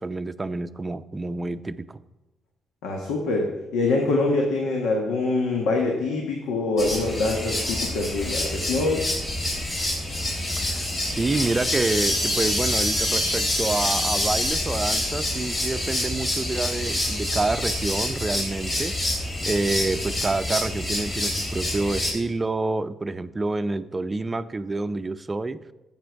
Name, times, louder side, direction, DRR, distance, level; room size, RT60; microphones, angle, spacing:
voice 1, 0.0-2.0 10.6-18.9 19.4-25.6, right 3 dB, 25° right, 12 dB, 0.5 m, -28 dB
voice 2, 2.8-9.0, left 3 dB, 90° left, 1 dB, 1.5 m, -24 dB
sound 1, 6.8-22.1, left 1 dB, 40° left, 3.2 m, -27 dB
12.0 x 8.0 x 4.6 m, 1.1 s
cardioid pair, 90°, 0 cm